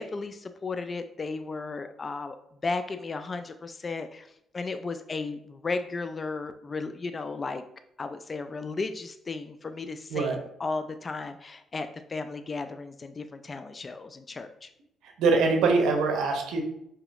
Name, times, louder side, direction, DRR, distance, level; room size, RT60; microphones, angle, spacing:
voice 1, 0.0-2.4 2.6-4.3 4.5-7.7 8.0-14.7, left 3 dB, 35° left, 9 dB, 0.3 m, -34 dB
voice 2, 15.2-16.6, right 4 dB, 85° right, 3 dB, 0.7 m, -23 dB
4.9 x 2.9 x 2.4 m, 0.76 s
cardioid pair, 90°, 0 cm